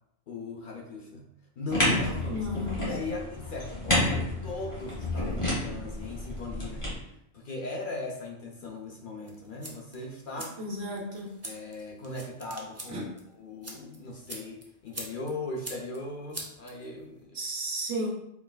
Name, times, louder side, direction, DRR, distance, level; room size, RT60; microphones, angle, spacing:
voice 1, 0.3-1.3 1.6-2.5 2.8-6.8 7.3-10.6 11.4-17.4, left 2 dB, 55° left, 0 dB, 0.7 m, -39 dB
sound 1, 1.7-6.9, left 1 dB, 30° left, 1.3 m, -30 dB
voice 2, 2.3-2.9 10.6-11.3 12.9-13.0 17.3-18.1, right 1 dB, 70° right, -2 dB, 1.2 m, -33 dB
sound 2, 9.2-17.2, right 1 dB, 25° right, 0.4 m, -45 dB
4.4 x 3.2 x 2.3 m, 0.79 s
omnidirectional pair, 1.1 m